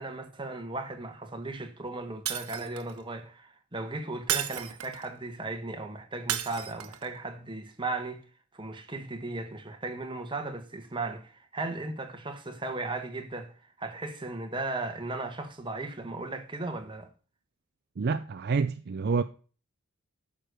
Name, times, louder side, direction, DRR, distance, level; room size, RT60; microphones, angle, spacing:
voice 1, 0.0-8.2 8.5-17.1, right 2 dB, 20° right, 1.4 m, -36 dB
Shatter, 2.3-3.0 4.3-5.1 6.3-7.1, right 11 dB, 85° right, 0.9 m, -33 dB
voice 2, 18.0-19.2, right 4 dB, 50° right, 0.4 m, -28 dB
9.0 x 6.5 x 6.7 m
head